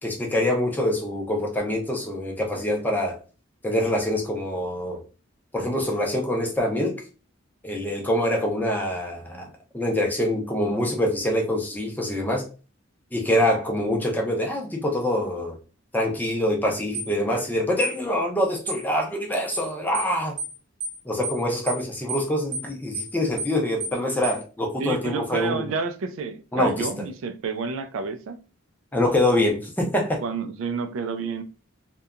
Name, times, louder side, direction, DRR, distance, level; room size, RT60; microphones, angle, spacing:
voice 1, 0.0-3.2 3.6-5.0 5.5-7.0 7.6-12.4 13.1-15.6 15.9-20.4 21.0-25.7 26.5-26.9 28.9-30.2, left 1 dB, 10° left, 0.5 m, -25 dB
sound 1, 16.9-17.1 17.8-18.0 18.7-18.8 19.5-19.7 19.9-20.1 20.4-20.5 20.8-21.0 21.2-21.4 21.7-21.8 22.1-22.3 22.5-22.7 22.9-23.1 23.4-23.5 23.8-24.0 24.2-24.4, right 3 dB, 35° right, 0.8 m, -31 dB
voice 2, 24.8-28.4 30.2-31.4, right 4 dB, 70° right, 0.3 m, -29 dB
2.7 x 2.2 x 2.4 m
head